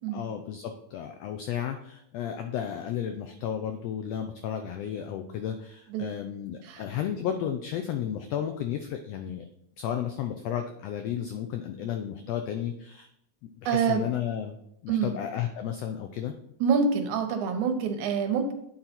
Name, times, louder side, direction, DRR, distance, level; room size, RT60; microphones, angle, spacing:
voice 1, 0.1-9.5 9.8-13.1 13.4-14.6 14.8-16.3, left 9 dB, 90° left, 7 dB, 1.4 m, -33 dB
voice 2, 13.7-14.0 14.9-15.1 16.6-18.5, right 6 dB, 80° right, 5 dB, 2.3 m, -26 dB
8.7 x 3.9 x 4.3 m, 0.74 s
omnidirectional pair, 3.4 m